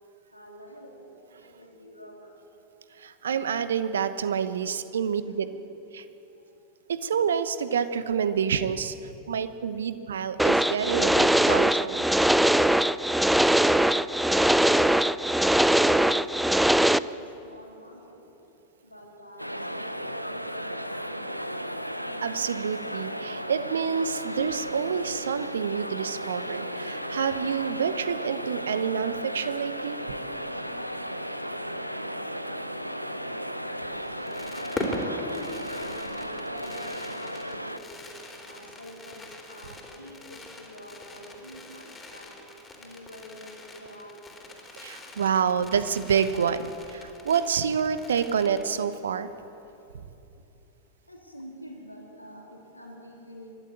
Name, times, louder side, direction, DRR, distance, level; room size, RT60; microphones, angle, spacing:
voice 1, 0.3-2.4 5.2-5.5 6.3-6.5 15.4-18.3 18.8-21.6 35.1-38.0 38.4-42.4 42.8-44.3 51.1-53.6, equal, 90° left, -1 dB, 3.6 m, -47 dB
voice 2, 3.0-5.5 5.9-6.0 6.9-8.9 9.3-12.1 22.2-30.0 44.8-49.3, right 7 dB, 65° right, 12 dB, 1.0 m, -28 dB
sound 1, 10.4-17.0, right 1 dB, ahead, 0.4 m, -21 dB
sound 2, 19.4-37.8, equal, 90° right, 0.8 m, -35 dB
Fireworks, 33.9-49.1 49.4-49.5 49.7-50.0, left 1 dB, 15° left, 3.6 m, -41 dB
24.0 x 12.5 x 8.8 m, 2.9 s
figure-of-eight pair, 90°, 0 cm